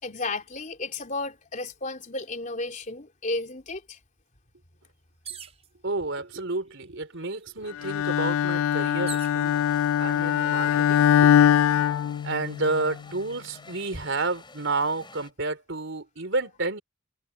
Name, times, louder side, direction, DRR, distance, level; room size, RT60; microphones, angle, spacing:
voice 1, 0.0-4.0, left 2 dB, 40° left, 3.6 m, -33 dB
sound 1, 5.2-5.7 6.6-6.7 7.0-9.4 10.2-10.7, right 8 dB, 30° right, 4.6 m, -42 dB
voice 2, 5.8-9.6 10.0-11.3 12.2-16.8, right 3 dB, 65° right, 4.0 m, -30 dB
Bowed string instrument, 7.8-12.8, left 9 dB, 85° left, 0.3 m, -22 dB
sound 2, 9.4-15.3, left 3 dB, 25° left, 5.7 m, -50 dB
head